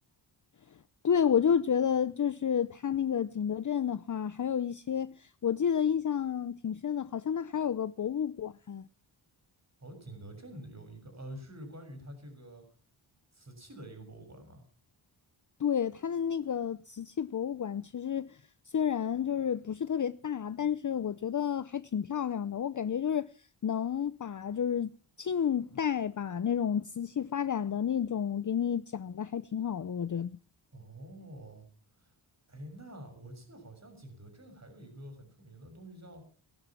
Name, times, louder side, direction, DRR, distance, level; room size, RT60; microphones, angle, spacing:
voice 1, 1.0-8.9 15.6-18.4 18.7-23.3 23.6-30.4, left 8 dB, 40° left, 0.7 m, -30 dB
voice 2, 9.8-12.6 13.3-14.6 30.7-31.7 32.0-32.1 32.5-36.2, right 1 dB, 35° right, 6.8 m, -47 dB
19.0 x 12.0 x 6.0 m
wide cardioid pair, 95°, 47 cm